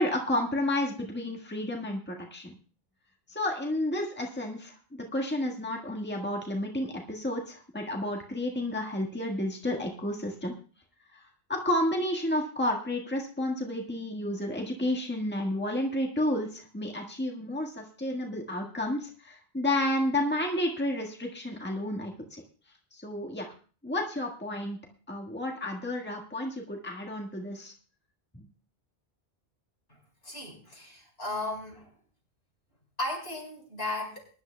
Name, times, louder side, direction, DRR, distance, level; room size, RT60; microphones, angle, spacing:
voice 1, 0.0-2.5 3.3-4.7 5.1-10.5 11.1-11.2 11.5-22.4 22.9-23.5 23.8-24.8 25.1-27.7 28.3-28.5, left 1 dB, 10° left, 0 dB, 1.6 m, -31 dB
voice 2, 30.2-31.9 33.0-34.3, left 2 dB, 75° left, -1 dB, 5.3 m, -35 dB
23.0 x 11.0 x 2.3 m, 0.40 s
omnidirectional pair, 1.0 m